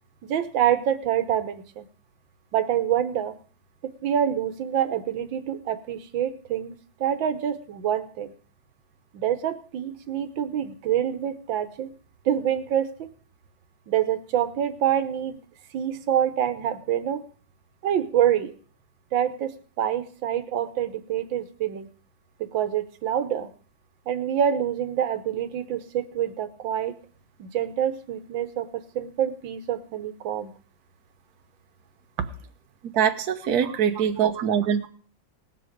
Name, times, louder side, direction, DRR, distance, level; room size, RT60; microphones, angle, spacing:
voice 1, 0.2-1.9 2.5-3.4 3.8-6.8 7.0-8.3 9.1-11.9 12.3-13.1 13.9-15.4 15.7-17.2 17.8-18.5 19.1-19.5 19.8-21.9 22.5-23.5 24.1-27.0 27.4-30.5 33.6-33.7, right 10 dB, 85° right, 10 dB, 1.7 m, -26 dB
voice 2, 32.9-34.9, right 8 dB, 60° right, 7 dB, 1.4 m, -23 dB
18.5 x 7.5 x 5.0 m, 0.42 s
omnidirectional pair, 2.0 m